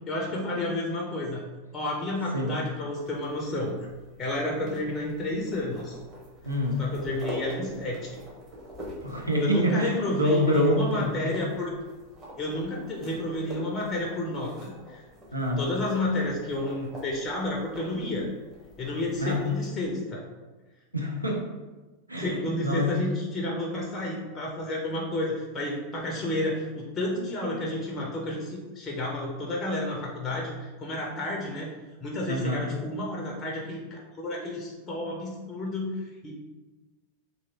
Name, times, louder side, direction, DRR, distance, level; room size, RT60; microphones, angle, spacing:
voice 1, 0.1-1.4 1.7-3.8 4.2-6.0 6.8-8.2 9.4-11.7 12.4-15.0 15.6-18.3 18.8-20.3 22.2-31.7 32.0-36.3, left 1 dB, 25° left, -1 dB, 0.5 m, -31 dB
sound 1, 3.0-19.7, equal, 20° right, 1.0 m, -45 dB
voice 2, 6.4-6.8 9.0-11.4 15.3-15.6 19.2-19.4 20.9-21.4 22.1-23.1 32.3-32.7, left 1 dB, 85° right, -1 dB, 0.6 m, -26 dB
2.9 x 2.6 x 2.7 m, 1.2 s
figure-of-eight pair, 90°, 0 cm